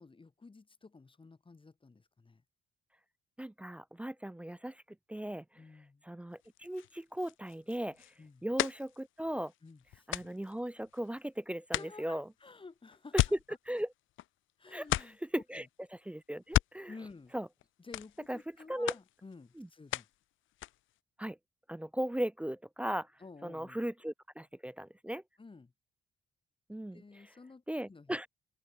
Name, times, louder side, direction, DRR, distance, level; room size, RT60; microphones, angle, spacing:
voice 1, 0.0-2.4 5.6-6.0 8.2-8.5 9.6-10.1 11.7-13.2 14.6-15.7 16.9-17.3 17.8-20.1 23.2-23.8 25.4-25.7 26.9-28.3, left 3 dB, 25° left, 5.3 m, -52 dB
voice 2, 3.4-4.8 5.1-5.4 6.0-8.0 8.4-9.5 10.1-12.2 13.7-13.9 14.7-15.7 16.1-16.9 17.3-17.5 18.3-18.4 18.7-18.9 19.6-19.7 21.2-21.4 21.7-23.1 23.4-25.2 26.7-27.3 27.7-28.3, right 1 dB, 5° right, 0.3 m, -37 dB
sound 1, 6.4-11.3 11.7-14.5 14.8-15.4 16.3-17.7 17.9-18.5 18.9-20.2 20.5-21.0, left 15 dB, 80° left, 0.7 m, -37 dB
open air
cardioid pair, 90°, 20 cm